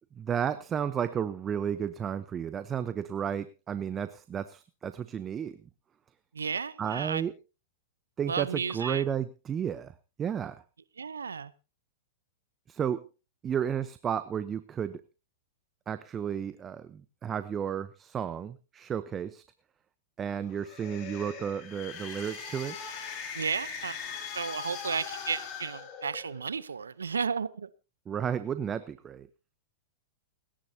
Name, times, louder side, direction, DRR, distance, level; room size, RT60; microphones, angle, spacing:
voice 1, 0.2-5.6 6.8-7.3 8.2-9.9 10.2-10.6 12.7-13.0 13.4-15.0 15.9-19.4 20.2-22.8 28.1-29.3, right 8 dB, 25° right, 0.8 m, -32 dB
voice 2, 6.3-7.2 8.3-9.0 11.0-11.5 23.3-24.0 24.3-27.7, right 5 dB, 90° right, 0.8 m, -33 dB
sound 1, 20.5-26.6, left 6 dB, 40° left, 4.9 m, -40 dB
29.0 x 10.0 x 2.8 m
hypercardioid pair, 110°, 0 cm